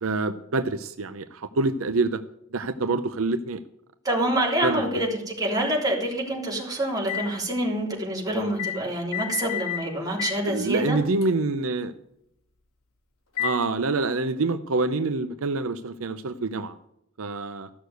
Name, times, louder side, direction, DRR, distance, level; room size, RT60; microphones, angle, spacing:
voice 1, 0.0-2.2 2.5-3.6 4.6-4.9 10.4-11.9 13.4-16.8 17.2-17.7, right 3 dB, 75° right, 10 dB, 0.7 m, -26 dB
voice 2, 4.0-11.0, right 1 dB, 20° right, -2 dB, 3.5 m, -26 dB
sound 1, 7.1-7.3 8.6-8.8 9.1-9.8 10.2-10.4 11.2-11.3 13.4-13.6, left 11 dB, 80° left, 2.7 m, -30 dB
14.5 x 6.6 x 8.0 m, 0.77 s
head